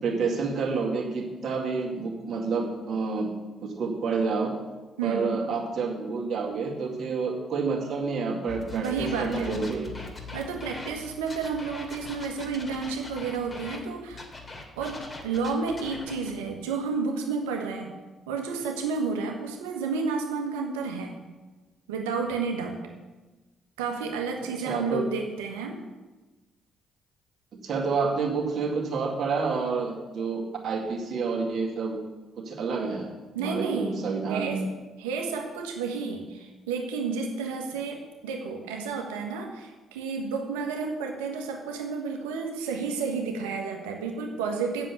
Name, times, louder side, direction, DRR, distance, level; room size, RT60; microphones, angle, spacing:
voice 1, 0.0-3.3 3.6-4.5 5.0-10.1 24.7-25.0 27.6-32.0 32.4-33.1 33.4-34.6, right 4 dB, 55° right, -1 dB, 2.1 m, -29 dB
voice 2, 5.0-5.4 8.7-9.6 10.3-14.2 14.8-17.9 18.3-21.1 21.9-22.8 23.8-25.8 33.3-33.9 34.2-34.6 35.0-44.9, right 5 dB, 80° right, 2 dB, 1.5 m, -31 dB
sound 1, 8.5-13.8 14.1-16.3, left 3 dB, 30° left, 2.7 m, -41 dB
7.7 x 7.3 x 8.1 m, 1.2 s
hypercardioid pair, 45°, 0 cm